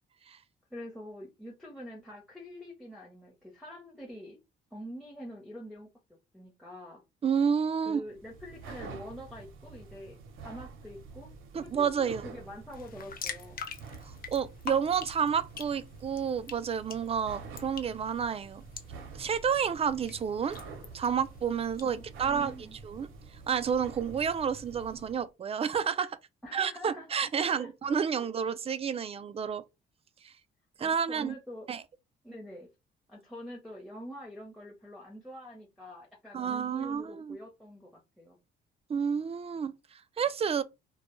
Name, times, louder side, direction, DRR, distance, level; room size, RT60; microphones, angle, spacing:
voice 1, 0.7-4.4 4.7-5.9 6.3-7.0 7.8-11.3 11.6-13.6 21.8-22.8 26.4-27.1 27.4-27.7 28.2-28.3 30.8-31.7 32.2-32.7 33.1-38.4, equal, ahead, 0.8 m, -45 dB
voice 2, 7.2-8.0 11.5-12.2 14.0-18.6 19.1-20.6 20.9-23.1 23.5-26.2 26.5-29.6 30.2-30.3 30.8-31.3 31.7-31.8 36.3-37.4 38.9-40.6, right 7 dB, 30° right, 0.4 m, -30 dB
sound 1, 8.1-25.2, right 4 dB, 85° right, 0.6 m, -48 dB
sound 2, 12.7-21.9, left 6 dB, 45° left, 0.6 m, -46 dB
2.2 x 2.1 x 3.0 m
cardioid pair, 90°, 20 cm